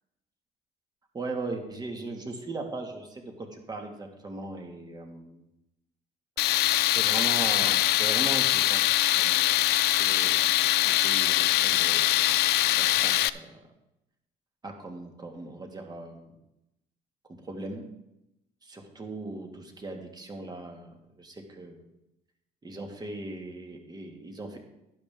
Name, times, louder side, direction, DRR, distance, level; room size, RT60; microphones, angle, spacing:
voice 1, 1.1-5.4 6.9-8.9 9.1-9.5 9.8-12.2 12.7-13.7 14.6-16.3 17.3-17.9 18.6-21.8 22.6-24.6, right 2 dB, 25° right, 2 dB, 2.1 m, -39 dB
Tools, 6.4-13.3, left 15 dB, 75° left, 0.5 m, -23 dB
12.0 x 10.5 x 3.7 m, 0.89 s
cardioid pair, 110°, 17 cm